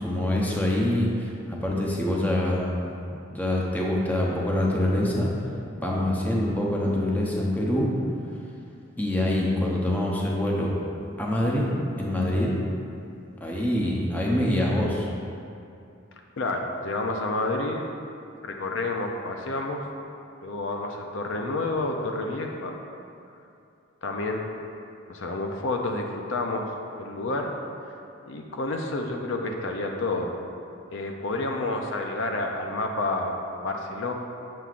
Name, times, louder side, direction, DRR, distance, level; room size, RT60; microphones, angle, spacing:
voice 1, 0.0-2.8 3.1-5.3 5.8-7.9 9.0-10.7 11.2-11.7 12.0-12.6 13.4-15.1, left 1 dB, 10° left, -3 dB, 0.7 m, -25 dB
voice 2, 16.4-17.9 18.4-19.8 20.4-22.8 24.0-24.5 25.1-26.7 27.0-27.5 28.3-30.3 30.9-34.1, left 2 dB, 70° left, 2 dB, 0.6 m, -29 dB
7.6 x 6.9 x 2.5 m, 2.6 s
head